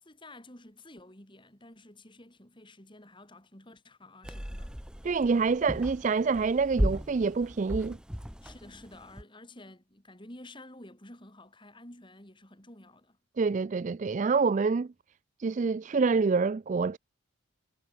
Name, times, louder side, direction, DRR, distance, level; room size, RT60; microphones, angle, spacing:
voice 1, 0.0-4.8 8.4-13.2, left 1 dB, 20° left, 3.7 m, -51 dB
sound 1, 4.2-9.2, equal, 5° right, 1.1 m, -35 dB
voice 2, 5.0-8.0 13.4-14.9 15.4-17.0, right 4 dB, 35° right, 0.3 m, -26 dB
head